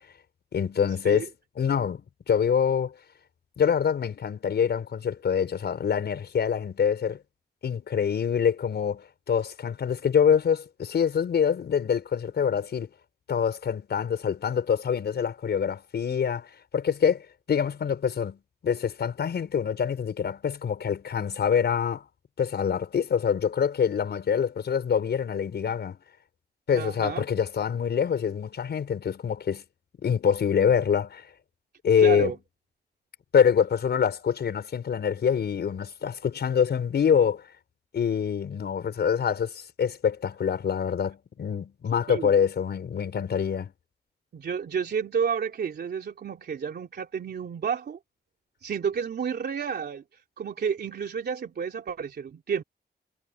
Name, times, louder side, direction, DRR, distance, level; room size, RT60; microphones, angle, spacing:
voice 1, 0.5-1.3 1.6-2.9 3.6-7.2 7.6-12.9 13.3-16.5 16.7-22.1 22.4-26.0 26.7-29.6 30.0-31.3 31.8-32.3 33.3-37.4 37.9-43.7, left 7 dB, 80° left, 5.8 m, -25 dB
voice 2, 26.7-27.2 32.0-32.4 42.1-42.3 44.3-48.0 48.6-50.0 50.4-52.6, right 7 dB, 75° right, 3.2 m, -30 dB
wide cardioid pair, 140°, 17 cm